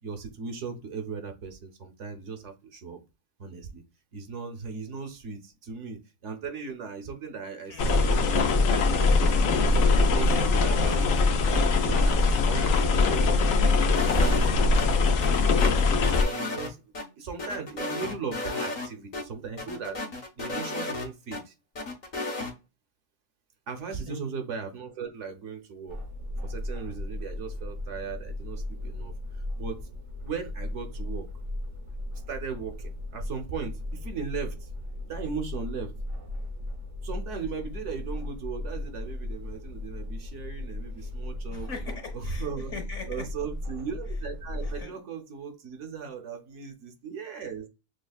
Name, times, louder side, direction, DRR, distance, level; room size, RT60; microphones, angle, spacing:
voice 1, 0.0-3.0 3.4-3.8 4.1-9.7 10.0-11.3 11.7-15.7 16.2-16.8 17.2-21.5 23.7-26.0 26.4-29.2 29.6-29.8 30.2-31.3 32.3-34.7 35.0-35.9 37.0-41.7 42.1-42.7 43.1-47.7, right 5 dB, 65° right, 1.0 m, -38 dB
voice 2, 7.7-8.1 24.0-24.2 41.5-43.2 44.6-45.0, left 4 dB, 65° left, 1.5 m, -41 dB
sound 1, 7.8-16.2, left 3 dB, 80° left, 1.0 m, -22 dB
sound 2, 13.9-14.9 15.2-17.0 17.4-18.9 19.1-19.2 19.6-21.4 21.7-22.5, left 2 dB, 45° left, 0.7 m, -33 dB
sound 3, 25.9-44.8, left 1 dB, 35° right, 0.6 m, -36 dB
6.3 x 2.1 x 2.3 m
omnidirectional pair, 1.4 m